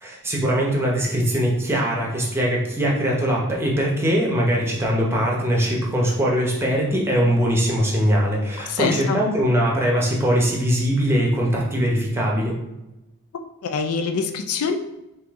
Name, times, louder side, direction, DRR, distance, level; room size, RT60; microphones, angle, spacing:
voice 1, 0.0-12.6, equal, 10° right, -3 dB, 0.7 m, -21 dB
voice 2, 8.7-9.2 13.6-14.8, left 5 dB, 75° left, 6 dB, 0.4 m, -24 dB
3.7 x 2.8 x 3.5 m, 0.95 s
head